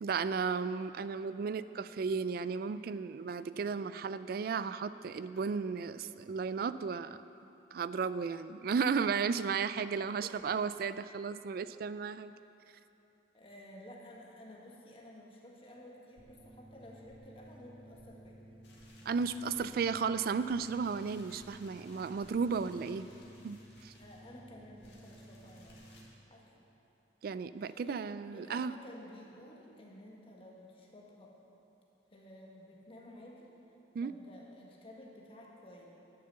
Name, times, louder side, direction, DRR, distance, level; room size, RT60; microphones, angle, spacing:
voice 1, 0.0-7.2 7.7-12.3 19.1-23.1 23.4-23.9 27.2-28.8 33.9-34.1, right 5 dB, 55° right, 14 dB, 0.3 m, -34 dB
voice 2, 13.3-18.5 19.6-19.9 24.0-25.8 26.3-26.6 27.6-28.1 28.3-31.4 32.1-33.5 34.0-35.8, left 1 dB, 30° left, -2 dB, 1.4 m, -53 dB
sound 1, 16.2-26.1, right 1 dB, 25° right, 0.9 m, -55 dB
sound 2, 18.6-26.0, left 2 dB, 70° left, 1.9 m, -62 dB
10.5 x 6.7 x 6.8 m, 2.9 s
head